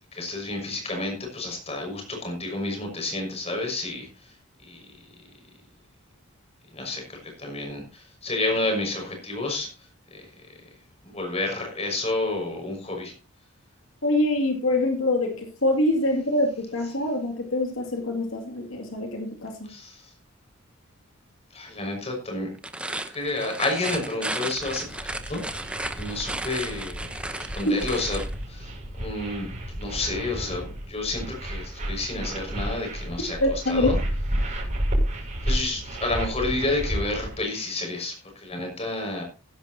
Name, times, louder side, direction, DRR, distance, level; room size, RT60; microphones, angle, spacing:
voice 1, 0.1-4.3 4.6-4.8 6.7-9.7 10.1-10.3 11.0-13.1 19.7-20.1 21.5-22.5 22.9-25.6 25.9-28.2 28.5-29.5 29.7-33.4 33.7-34.0 35.4-39.2, left 2 dB, 30° left, 2 dB, 6.0 m, -30 dB
voice 2, 14.0-19.7 27.7-27.8 33.4-33.9, left 1 dB, 85° left, 3 dB, 2.5 m, -25 dB
sound 1, 22.5-28.3, right 1 dB, 5° right, 0.9 m, -34 dB
sound 2, 24.5-37.4, equal, 40° right, 6.6 m, -31 dB
16.5 x 10.5 x 2.9 m, 0.31 s
head